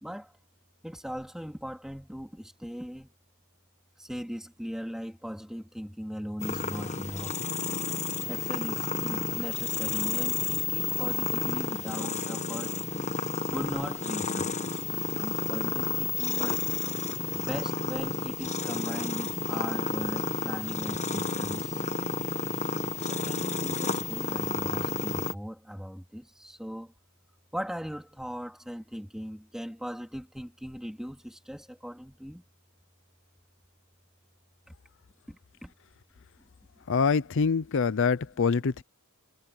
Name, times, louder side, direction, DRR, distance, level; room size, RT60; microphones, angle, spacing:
voice 1, 0.0-0.3 0.8-3.1 4.0-7.3 8.3-12.7 13.5-16.6 17.3-21.9 23.1-26.9 27.5-32.4 35.3-35.7, equal, ahead, 3.7 m, -39 dB
sound 1, 6.4-25.3, left 4 dB, 30° left, 1.4 m, -31 dB
voice 2, 36.9-38.8, left 5 dB, 60° left, 0.5 m, -25 dB
head